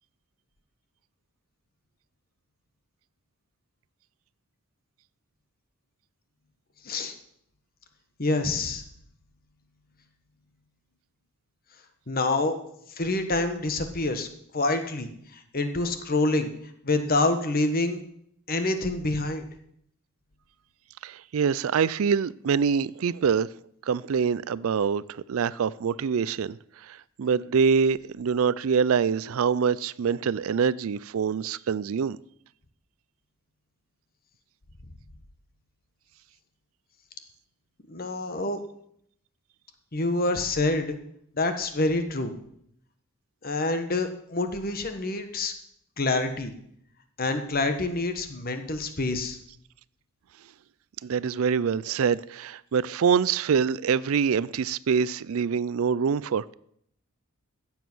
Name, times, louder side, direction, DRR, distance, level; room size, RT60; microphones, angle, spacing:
voice 1, 6.8-7.1 8.2-8.8 12.1-12.6 12.9-14.3 14.5-16.5 16.8-18.0 18.5-19.5 37.9-38.6 39.9-41.0 41.4-42.3 43.4-45.5 46.0-46.5 47.2-49.4, left 2 dB, 40° left, 1.3 m, -27 dB
voice 2, 21.0-23.5 23.9-26.6 26.9-32.2 51.0-56.5, right 6 dB, 70° right, 0.4 m, -25 dB
15.5 x 7.3 x 6.2 m
head